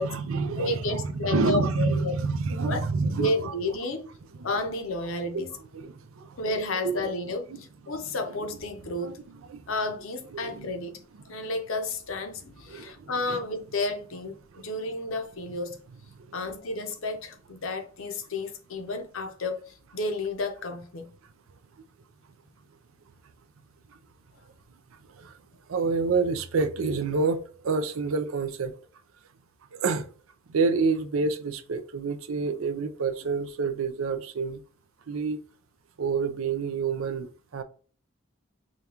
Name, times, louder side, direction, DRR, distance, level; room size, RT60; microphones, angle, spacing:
voice 1, 0.0-3.5 4.4-4.5 5.7-6.4 6.8-7.0 7.5-7.6 7.9-8.0 9.0-9.1 9.5-9.6 10.3-10.6 11.3-11.4 12.7-13.4 14.5-14.8 16.3-16.4 25.2-25.4 25.7-28.7 29.7-30.1 30.5-34.6 35.1-35.4 36.0-37.6, right 4 dB, 90° right, 0.5 m, -28 dB
voice 2, 0.6-2.1 2.6-2.8 3.1-4.1 4.4-5.5 6.4-9.2 9.7-11.0 11.3-15.8 16.3-21.1, left 2 dB, 80° left, 0.7 m, -31 dB
5.0 x 2.3 x 2.8 m
head